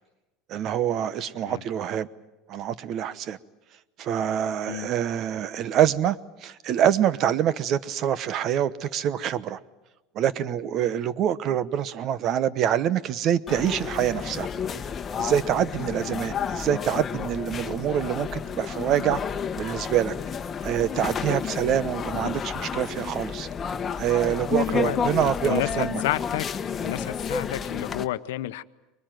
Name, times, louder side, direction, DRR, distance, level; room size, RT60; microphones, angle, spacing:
voice 1, 0.5-2.1 2.5-3.4 4.0-9.6 10.1-14.5 15.2-19.2 19.6-20.1 20.6-23.5 24.0-26.0, right 10 dB, 50° right, 16 dB, 1.0 m, -25 dB
sound 1, 13.5-28.0, left 6 dB, 25° left, 1.2 m, -31 dB
voice 2, 24.6-26.5 26.8-28.6, left 15 dB, 85° left, 14 dB, 0.8 m, -31 dB
23.5 x 21.0 x 9.2 m, 1.1 s
supercardioid pair, 115°, 0 cm